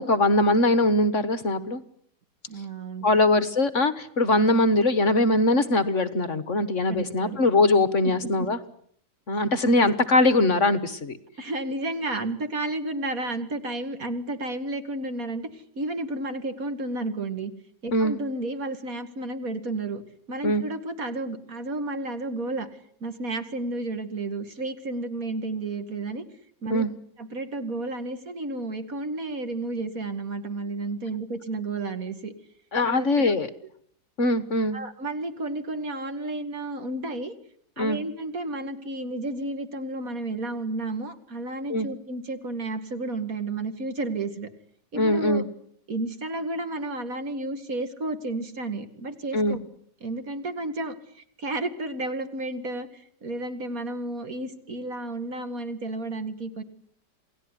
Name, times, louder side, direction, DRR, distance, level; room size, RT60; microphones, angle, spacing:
voice 1, 0.0-1.8 3.0-8.6 9.3-11.2 17.9-18.1 20.4-20.6 26.7-26.9 32.7-33.5 34.2-34.8 37.8-38.0 41.7-41.9 44.9-45.4 49.3-49.6, left 2 dB, 45° left, 13 dB, 1.6 m, -22 dB
voice 2, 2.5-3.1 6.9-7.4 8.2-8.5 11.4-17.5 17.8-20.0 20.3-22.7 23.0-26.2 26.6-26.9 27.2-32.3 32.8-33.3 34.7-37.3 37.8-44.5 44.9-45.4 45.9-49.6 50.0-56.6, right 2 dB, 55° right, 9 dB, 2.6 m, -32 dB
28.5 x 18.0 x 9.9 m, 0.66 s
omnidirectional pair, 1.8 m